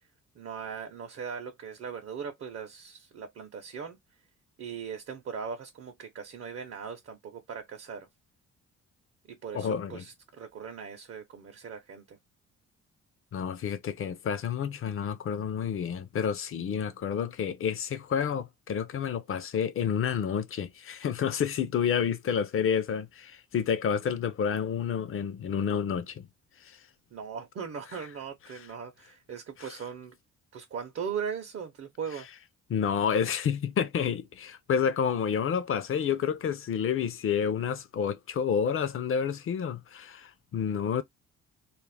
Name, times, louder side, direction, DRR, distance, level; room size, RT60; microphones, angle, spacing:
voice 1, 0.3-4.0 4.6-8.1 9.3-12.2 27.1-30.1 30.5-32.3, right 6 dB, 50° right, 0.7 m, -39 dB
voice 2, 9.5-10.0 13.3-26.3 26.6-26.8 29.6-29.7 32.7-41.0, left 7 dB, 45° left, 0.5 m, -29 dB
2.4 x 2.1 x 3.3 m
cardioid pair, 90°, 30 cm